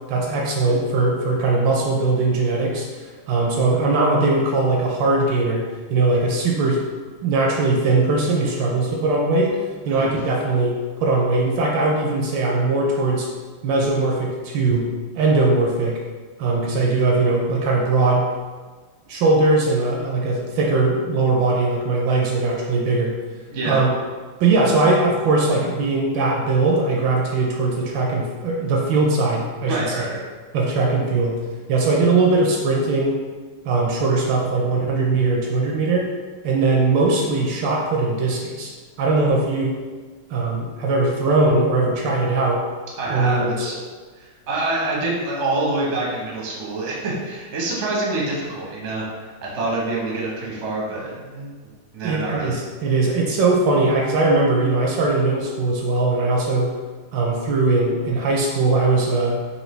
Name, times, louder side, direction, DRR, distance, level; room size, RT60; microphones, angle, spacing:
voice 1, 0.1-6.8 7.2-9.6 9.9-13.3 13.6-14.9 15.2-16.0 16.4-18.3 19.1-23.2 23.6-23.9 24.4-29.8 30.5-31.4 31.7-33.2 33.6-36.1 36.4-38.7 39.0-39.8 40.3-42.6 43.1-43.8 52.0-56.8 57.1-59.4, right 3 dB, 75° right, -1 dB, 1.1 m, -20 dB
voice 2, 29.6-30.2 43.0-43.8 44.2-51.5 51.9-52.5, right 2 dB, 55° right, -4 dB, 0.8 m, -26 dB
4.5 x 2.6 x 3.1 m, 1.4 s
omnidirectional pair, 2.4 m